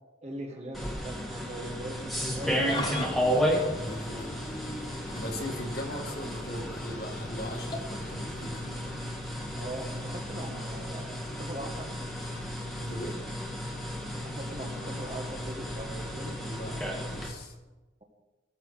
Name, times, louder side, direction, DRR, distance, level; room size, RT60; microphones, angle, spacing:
voice 1, 0.2-2.8 4.1-4.4 9.5-11.9 14.2-16.3, right 1 dB, 35° right, 1 dB, 1.8 m, -41 dB
sound 1, 0.7-17.3, equal, ahead, 1.7 m, -33 dB
sound 2, 1.5-7.6, left 2 dB, 75° left, 1.6 m, -52 dB
Engine starting / Idling, 2.4-13.0, left 1 dB, 25° left, 1.2 m, -42 dB
voice 2, 3.7-4.4 5.1-8.7 12.8-13.2 16.4-17.5, left 1 dB, 55° left, 1 dB, 2.1 m, -39 dB
18.5 x 6.8 x 4.1 m, 1.1 s
head